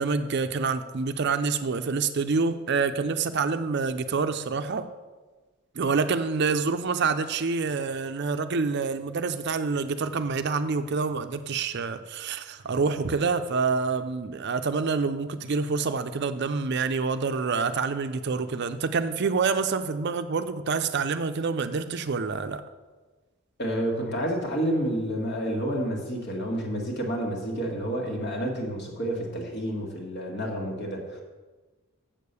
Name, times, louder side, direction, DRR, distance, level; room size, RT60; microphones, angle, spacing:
voice 1, 0.0-4.9 5.8-22.6, right 4 dB, 50° right, 10 dB, 0.5 m, -27 dB
voice 2, 23.6-31.2, right 1 dB, 50° left, 0 dB, 1.8 m, -29 dB
7.5 x 6.7 x 6.8 m, 1.3 s
head